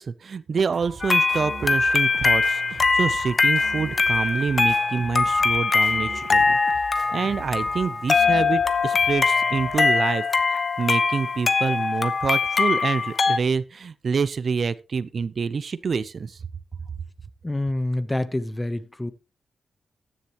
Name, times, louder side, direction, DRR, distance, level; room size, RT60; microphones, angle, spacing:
voice 1, 0.0-6.6 7.1-16.4, right 5 dB, 55° right, 0.7 m, -27 dB
sound 1, 0.7-10.2, right 3 dB, 85° right, 2.6 m, -42 dB
sound 2, 1.0-13.4, left 4 dB, 45° left, 0.9 m, -22 dB
voice 2, 17.4-19.1, left 1 dB, 15° left, 1.0 m, -27 dB
14.5 x 10.0 x 3.0 m
cardioid pair, 95°, 0 cm